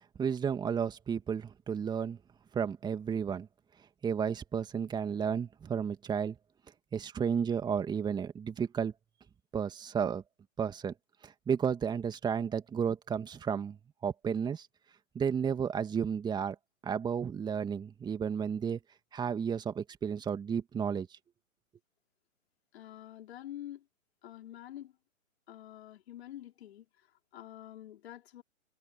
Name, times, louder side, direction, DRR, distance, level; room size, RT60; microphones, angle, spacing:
voice 1, 0.2-2.2 2.5-3.5 4.0-6.4 6.9-8.9 9.5-10.2 10.6-10.9 11.2-13.8 14.0-14.7 15.1-16.6 16.8-18.8 19.1-21.2, right 7 dB, 10° right, 2.4 m, -32 dB
voice 2, 22.7-23.9 24.2-25.0 25.5-28.4, left 12 dB, 50° left, 5.4 m, -47 dB
open air
figure-of-eight pair, 130°, 42 cm